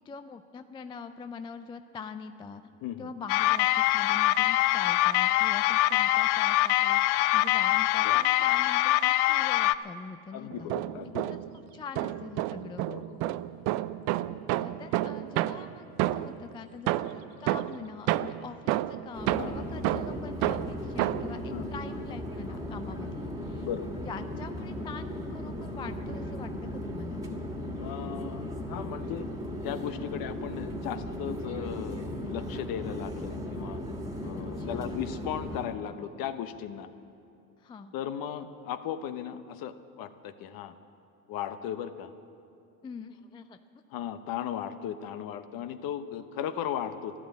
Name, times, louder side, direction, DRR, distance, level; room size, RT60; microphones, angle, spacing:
voice 1, 0.0-2.6 3.0-10.7 11.2-11.4 11.7-12.9 14.5-23.7 24.0-27.3 34.6-35.0 37.6-37.9 42.8-43.6, left 5 dB, 10° left, 9 dB, 0.3 m, -44 dB
sound 1, 3.3-9.7, left 15 dB, 70° left, 0.6 m, -24 dB
voice 2, 10.3-11.3 12.9-13.3 19.4-19.6 21.5-21.7 23.6-24.0 27.8-29.3 29.6-33.8 34.2-36.9 37.9-40.7 41.3-42.1 43.9-47.1, left 9 dB, 50° left, 10 dB, 1.1 m, -36 dB
sound 2, 10.5-11.6 12.0-16.5 16.9-21.4, right 15 dB, 60° right, 0.6 m, -30 dB
sound 3, 19.1-35.7, left 1 dB, 10° right, 2.0 m, -37 dB
13.0 x 12.5 x 8.4 m, 2.7 s
supercardioid pair, 100°, 45 cm